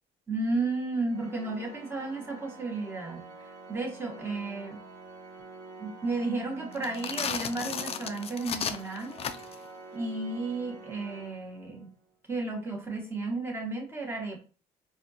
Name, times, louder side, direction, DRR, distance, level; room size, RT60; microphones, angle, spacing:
voice 1, 0.3-3.3 3.7-4.8 5.8-9.2 9.9-11.9 12.3-14.4, right 3 dB, 15° right, 0 dB, 1.1 m, -33 dB
Organ, 1.1-12.1, right 3 dB, 85° right, 0.8 m, -47 dB
sound 1, 6.7-9.7, left 7 dB, 35° left, 0.4 m, -34 dB
4.2 x 2.3 x 2.6 m, 0.38 s
cardioid pair, 110°, 17 cm